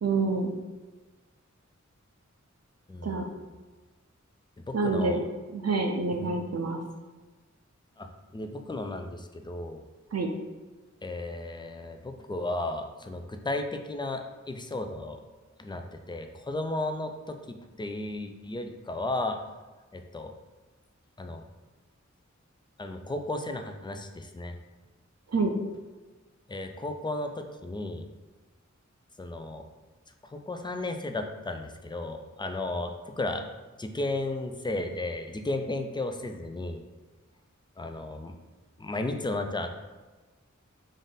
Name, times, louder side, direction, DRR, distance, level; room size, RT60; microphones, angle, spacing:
voice 1, 0.0-0.5 3.0-3.2 4.7-5.2 5.5-6.8 10.1-10.3 25.3-25.5, right 3 dB, 60° right, 3 dB, 0.5 m, -27 dB
voice 2, 2.9-3.3 4.6-5.2 6.1-6.3 8.0-9.8 11.0-15.2 15.6-19.4 19.9-20.3 21.2-21.4 22.8-24.6 26.5-28.1 29.2-29.7 30.2-33.4 33.8-36.8 37.8-38.3 38.8-39.7, left 2 dB, 15° left, 6 dB, 0.4 m, -34 dB
3.6 x 2.6 x 3.8 m, 1.3 s
wide cardioid pair, 40°, 30 cm